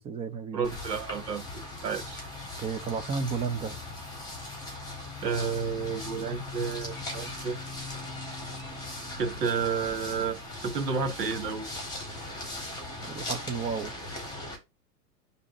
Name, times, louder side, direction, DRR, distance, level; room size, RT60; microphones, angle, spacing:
voice 1, 0.0-0.8 2.6-3.8 13.0-13.9, right 5 dB, 15° right, 0.5 m, -33 dB
voice 2, 0.5-2.2 5.2-7.6 9.2-11.7, right 6 dB, 80° right, 2.2 m, -31 dB
sound 1, 0.6-14.6, left 2 dB, 10° left, 4.7 m, -39 dB
11.5 x 4.2 x 4.0 m
hypercardioid pair, 135°, 48 cm